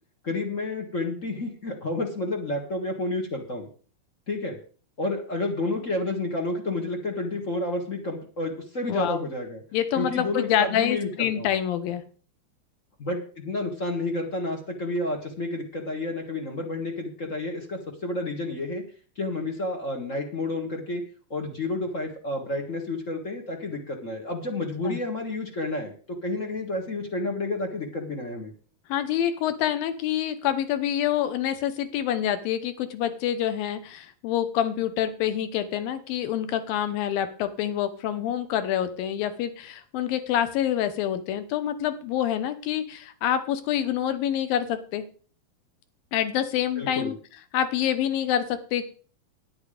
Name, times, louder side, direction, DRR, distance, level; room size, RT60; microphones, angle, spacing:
voice 1, 0.2-3.7 4.3-4.6 5.0-9.6 10.0-11.5 13.0-18.8 19.2-21.0 21.3-28.5 46.8-47.1, left 2 dB, 40° left, 2 dB, 1.1 m, -30 dB
voice 2, 8.9-9.2 9.7-12.0 24.8-25.0 28.9-45.0 46.1-47.1 47.5-48.9, left 10 dB, 80° left, 11 dB, 2.7 m, -26 dB
11.0 x 9.5 x 5.0 m, 0.41 s
omnidirectional pair, 4.1 m